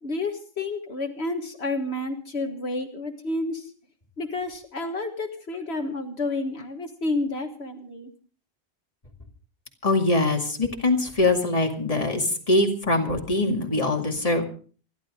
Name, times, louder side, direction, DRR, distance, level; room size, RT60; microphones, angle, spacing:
voice 1, 0.0-3.7 4.2-8.1, left 2 dB, 75° left, 4 dB, 1.8 m, -30 dB
voice 2, 9.8-14.4, left 2 dB, 35° left, 2 dB, 2.4 m, -23 dB
26.5 x 12.0 x 3.7 m, 0.40 s
omnidirectional pair, 1.1 m